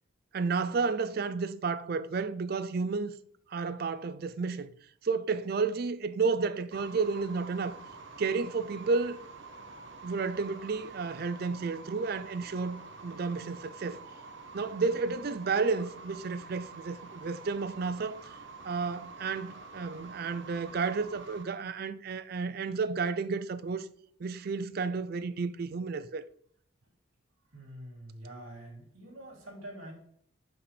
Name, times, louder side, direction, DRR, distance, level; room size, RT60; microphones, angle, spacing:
voice 1, 0.3-3.1 3.5-4.7 5.0-7.8 8.2-9.2 10.0-14.0 14.5-18.2 18.6-23.9 24.2-26.3, right 4 dB, 45° right, 0.4 m, -31 dB
sound 1, 6.7-21.4, right 4 dB, 65° right, 0.9 m, -48 dB
voice 2, 27.5-29.9, right 1 dB, 85° right, 2.8 m, -46 dB
7.3 x 5.9 x 3.3 m
head